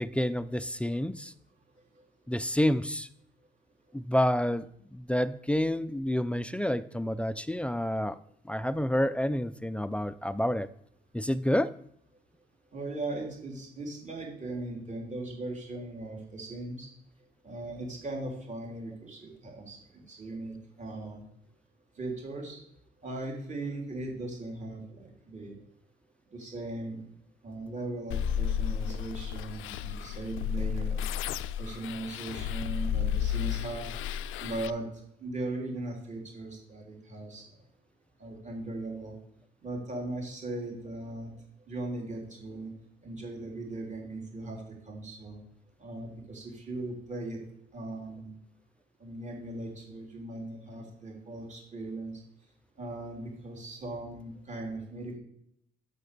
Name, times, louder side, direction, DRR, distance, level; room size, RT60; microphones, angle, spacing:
voice 1, 0.0-1.3 2.3-3.1 3.9-8.2 8.5-10.7 11.1-11.7, left 1 dB, 5° left, 14 dB, 0.4 m, -29 dB
voice 2, 12.7-16.9 17.4-21.2 22.0-22.6 23.0-25.6 26.3-27.0 27.4-31.0 31.6-33.8 34.4-34.9 35.2-37.4 38.2-39.1 39.6-41.3 41.7-42.7 43.0-44.6 44.9-45.4 45.8-47.4 47.7-48.3 49.0-52.2 52.8-55.2, right 2 dB, 35° right, 0 dB, 3.3 m, -38 dB
sound 1, 28.1-34.7, left 8 dB, 85° left, 0.4 m, -32 dB
6.6 x 6.1 x 6.6 m, 0.72 s
cardioid pair, 90°, 20 cm